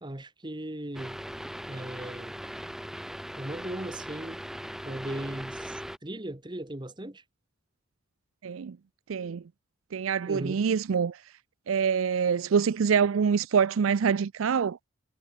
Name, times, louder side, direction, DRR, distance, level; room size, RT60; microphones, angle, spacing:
voice 1, 0.0-1.2 1.7-2.4 3.4-4.4 4.8-7.2 10.3-10.6, right 1 dB, 20° right, 1.2 m, -37 dB
sound 1, 0.9-6.0, equal, ahead, 1.4 m, -39 dB
voice 2, 8.4-8.8 9.1-9.4 9.9-11.2 11.7-14.8, right 6 dB, 90° right, 0.4 m, -25 dB
head